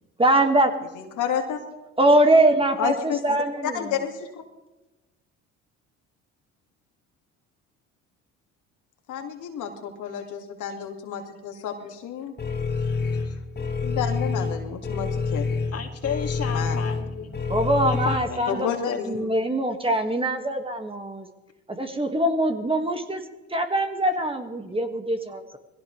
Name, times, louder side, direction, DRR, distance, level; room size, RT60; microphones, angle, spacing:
voice 1, 0.2-0.7 2.0-3.7 17.5-18.7 19.0-21.3 21.7-23.2 23.5-25.6, right 1 dB, 15° right, 6 dB, 1.9 m, -22 dB
voice 2, 0.9-1.6 2.8-3.4 3.6-4.3 9.1-12.3 13.8-15.5 16.5-16.8 18.5-19.3, left 8 dB, 65° left, 4 dB, 2.3 m, -30 dB
sound 1, 12.4-18.2, left 4 dB, 30° left, 2.3 m, -27 dB
voice 3, 12.5-13.4 15.7-17.3 17.8-19.3, left 7 dB, 50° left, 5 dB, 2.4 m, -34 dB
21.5 x 16.5 x 3.3 m, 1.0 s
supercardioid pair, 65°, 32 cm